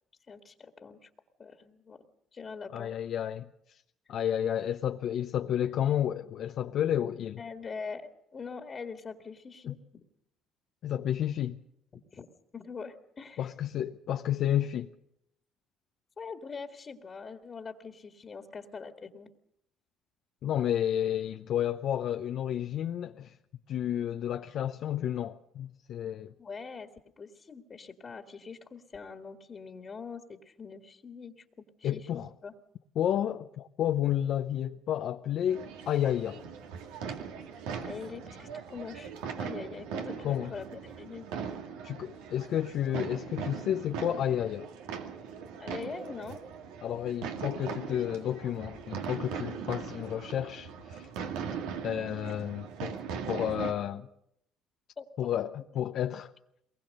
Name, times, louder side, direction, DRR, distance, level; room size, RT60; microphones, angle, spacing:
voice 1, 0.3-1.1 1.4-2.0 2.3-2.9 7.4-10.0 11.9-12.3 12.5-13.5 16.2-19.3 26.4-26.9 27.2-32.5 37.8-41.3 45.6-46.4 55.0-55.3, left 5 dB, 35° left, 1.8 m, -43 dB
voice 2, 2.7-3.5 4.1-7.4 9.7-9.8 10.8-11.6 13.4-14.9 20.4-23.4 23.7-26.3 31.8-32.3 33.0-36.4 40.2-40.5 41.8-44.7 46.8-51.1 51.8-53.0 53.3-54.1 55.2-56.3, left 10 dB, 60° left, 0.7 m, -31 dB
sound 1, 35.5-53.7, right 7 dB, 90° right, 2.3 m, -40 dB
22.5 x 20.5 x 6.6 m
cardioid pair, 95°, 0 cm